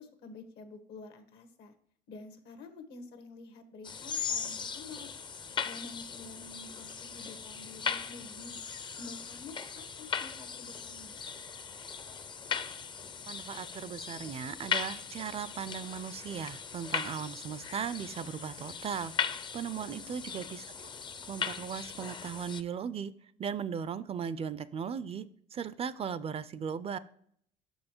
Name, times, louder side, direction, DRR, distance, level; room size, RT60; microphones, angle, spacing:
voice 1, 0.0-1.7 2.1-5.2 5.6-8.6 9.0-11.2 19.8-20.1, left 3 dB, 75° left, 8 dB, 1.2 m, -49 dB
sound 1, 3.8-22.6, left 7 dB, 25° left, 0.4 m, -38 dB
voice 2, 13.3-20.7 21.3-23.1 23.4-25.3 25.5-27.0, right 7 dB, 35° right, 16 dB, 0.4 m, -37 dB
6.4 x 5.5 x 4.4 m, 0.63 s
cardioid pair, 110°, 17 cm